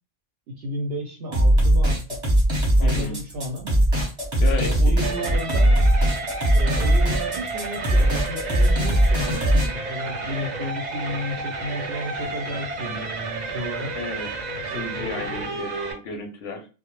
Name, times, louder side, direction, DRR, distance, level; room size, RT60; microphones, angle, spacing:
voice 1, 0.5-2.2 2.8-3.8 4.5-5.8 6.5-13.9 14.7-15.7, equal, 65° right, -2 dB, 0.7 m, -33 dB
sound 1, 1.3-9.7, right 1 dB, 25° right, 0.8 m, -19 dB
voice 2, 2.8-3.2 4.4-5.0 13.9-14.3 14.6-16.7, left 4 dB, 65° left, 4 dB, 0.7 m, -33 dB
sound 2, 5.0-15.9, right 3 dB, 90° right, 0.3 m, -31 dB
2.1 x 2.0 x 2.9 m, 0.34 s
omnidirectional pair, 1.3 m